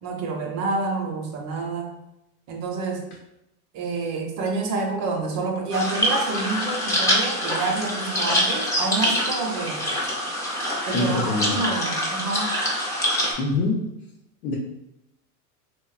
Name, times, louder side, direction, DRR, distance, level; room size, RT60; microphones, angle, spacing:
voice 1, 0.0-1.9 2.5-3.0 3.7-9.8 10.9-12.5, right 3 dB, 40° right, 2 dB, 0.6 m, -28 dB
sound 1, 5.7-13.3, equal, 10° left, 0.4 m, -25 dB
voice 2, 10.9-11.6 13.4-13.8 14.4-14.5, left 2 dB, 75° left, -3 dB, 0.7 m, -24 dB
3.0 x 2.1 x 2.3 m, 0.85 s
supercardioid pair, 115°, 44 cm